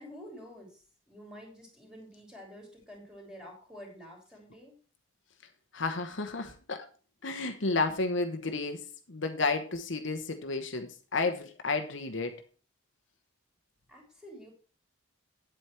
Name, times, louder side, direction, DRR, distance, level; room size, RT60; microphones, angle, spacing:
voice 1, 0.0-4.8 13.9-14.5, equal, 5° right, -1 dB, 3.3 m, -49 dB
voice 2, 5.7-6.9 7.2-8.8 9.1-12.3, left 3 dB, 60° left, 6 dB, 1.0 m, -31 dB
9.2 x 8.1 x 4.4 m, 0.36 s
head